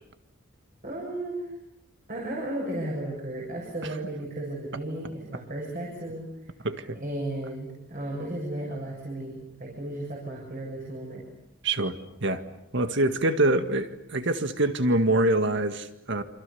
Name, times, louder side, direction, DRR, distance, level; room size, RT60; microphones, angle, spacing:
voice 1, 0.8-1.5 2.1-6.3 6.9-11.2, right 1 dB, 45° right, -2 dB, 7.3 m, -34 dB
voice 2, 6.6-7.0 11.6-12.4 12.7-16.2, right 1 dB, 65° right, 9 dB, 1.9 m, -25 dB
28.0 x 26.5 x 7.1 m, 0.83 s
head